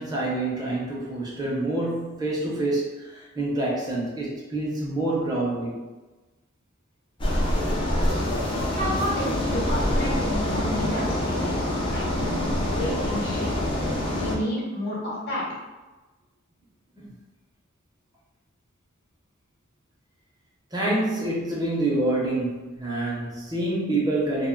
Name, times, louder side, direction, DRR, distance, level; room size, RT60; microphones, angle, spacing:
voice 1, 0.0-5.8 17.0-17.2 20.7-24.5, right 2 dB, 20° right, -5 dB, 0.6 m, -27 dB
sound 1, 7.2-14.4, left 1 dB, 25° left, 0.5 m, -25 dB
voice 2, 8.7-11.6 11.9-12.3 12.6-13.7 14.1-15.4, left 1 dB, 55° left, -6 dB, 1.0 m, -30 dB
2.1 x 2.0 x 3.6 m, 1.2 s
head